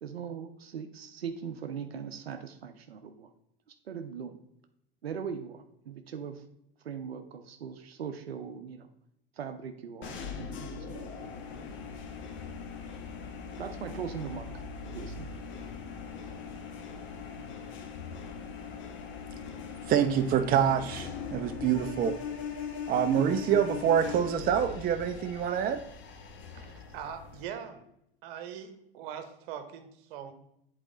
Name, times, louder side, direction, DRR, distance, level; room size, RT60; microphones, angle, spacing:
voice 1, 0.0-3.3 3.7-4.4 5.0-6.4 6.8-8.9 9.4-11.4 13.6-14.5 14.9-15.3, right 7 dB, 85° right, 7 dB, 0.6 m, -40 dB
sound 1, 10.0-27.4, left 6 dB, 40° left, 1.1 m, -40 dB
voice 2, 19.9-22.2 22.9-25.8, right 9 dB, 30° right, 8 dB, 0.5 m, -26 dB
voice 3, 26.5-27.9 28.2-30.3, right 8 dB, 60° right, 9 dB, 1.0 m, -42 dB
7.9 x 4.2 x 3.8 m, 0.80 s
hypercardioid pair, 80°, 30 cm